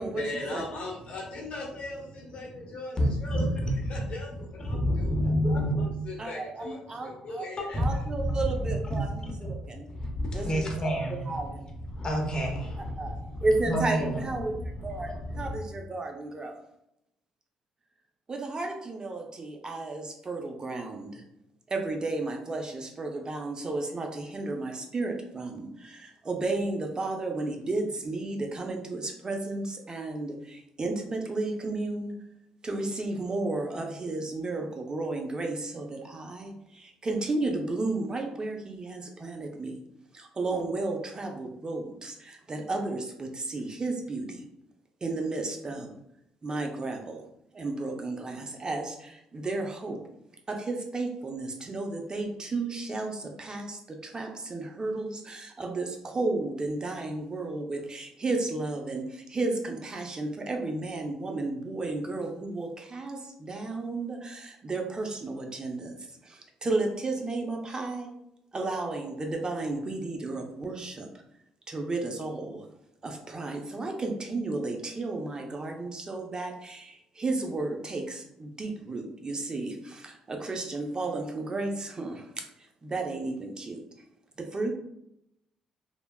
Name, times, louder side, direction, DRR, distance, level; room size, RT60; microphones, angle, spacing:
voice 1, 0.0-3.4 3.9-5.1 5.8-8.0, left 2 dB, 60° left, -2 dB, 1.0 m, -39 dB
voice 2, 2.4-4.0 4.3-5.9 7.1-7.2 7.6-9.5 9.9-11.6 11.9-15.6, equal, 35° left, 1 dB, 0.9 m, -30 dB
voice 3, 6.2-7.4 7.8-9.9 10.3-11.0 11.3-11.7 13.0-14.5 14.8-15.1 15.4-16.5 18.3-21.2 21.7-32.1 32.6-39.8 40.1-44.4 45.0-45.9 46.4-47.2 47.5-50.0 50.5-66.0 66.2-68.1 68.5-71.1 71.7-72.7 73.0-82.4 82.8-83.8 84.4-84.7, right 2 dB, 30° right, 3 dB, 0.5 m, -33 dB
3.1 x 2.2 x 2.3 m, 0.79 s
supercardioid pair, 65°, 2 cm